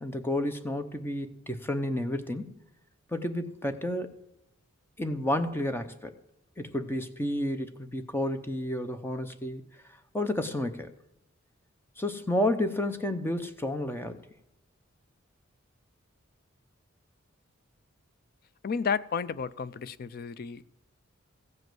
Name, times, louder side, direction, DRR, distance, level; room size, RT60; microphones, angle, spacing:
voice 1, 0.0-2.6 3.1-4.2 5.0-6.1 6.6-9.6 10.1-10.9 12.0-14.2, left 1 dB, 10° left, 0.7 m, -31 dB
voice 2, 18.6-20.7, left 6 dB, 50° left, 0.4 m, -32 dB
15.0 x 5.2 x 7.7 m
head